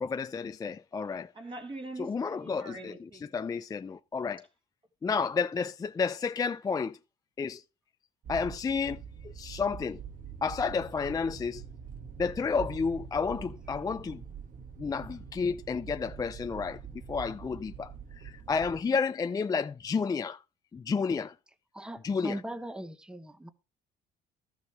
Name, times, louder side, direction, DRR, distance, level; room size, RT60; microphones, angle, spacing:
voice 1, 0.0-1.3 2.0-2.9 3.3-4.4 5.0-7.0 7.4-7.6 8.3-10.0 10.4-11.6 12.2-14.2 14.8-16.8 17.1-20.4 20.7-21.3 22.0-22.4, left 5 dB, 20° left, 0.5 m, -31 dB
voice 2, 1.3-3.4, right 2 dB, 30° right, 2.2 m, -43 dB
sound 1, 8.2-18.8, right 7 dB, 50° right, 1.8 m, -44 dB
voice 3, 21.7-23.5, right 1 dB, 5° right, 1.0 m, -39 dB
13.0 x 7.0 x 4.8 m
cardioid pair, 110°, 17 cm